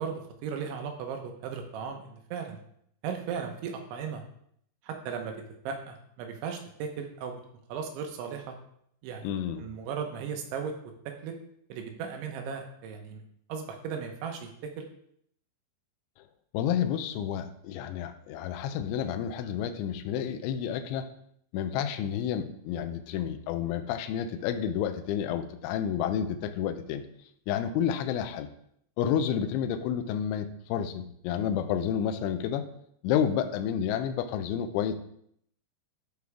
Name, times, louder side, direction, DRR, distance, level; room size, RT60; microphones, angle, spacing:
voice 1, 0.0-2.6 3.0-4.2 4.8-5.3 5.6-7.4 7.7-8.6 9.0-9.3 9.6-10.9 11.2-11.3 11.7-13.2 13.5-14.8, right 6 dB, 75° right, 4 dB, 3.3 m, -36 dB
voice 2, 9.2-9.7 16.5-21.1 21.5-27.0 27.5-28.5 29.0-32.7 33.0-34.9, left 9 dB, 80° left, 7 dB, 2.9 m, -30 dB
13.5 x 6.0 x 3.6 m, 0.69 s
omnidirectional pair, 5.8 m